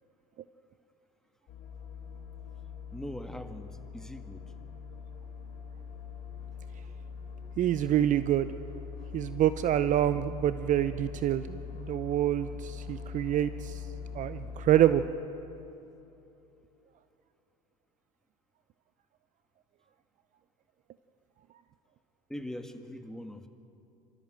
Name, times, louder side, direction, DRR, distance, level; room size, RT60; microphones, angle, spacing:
sound 1, 1.5-15.1, left 6 dB, 45° left, 3.3 m, -42 dB
voice 1, 2.9-4.5 22.3-23.5, left 1 dB, 5° left, 6 dB, 1.6 m, -41 dB
voice 2, 7.6-8.5 9.1-13.8 14.1-15.0, right 12 dB, 40° right, 13 dB, 0.7 m, -27 dB
27.0 x 13.5 x 7.7 m, 2.9 s
hypercardioid pair, 80°, 19 cm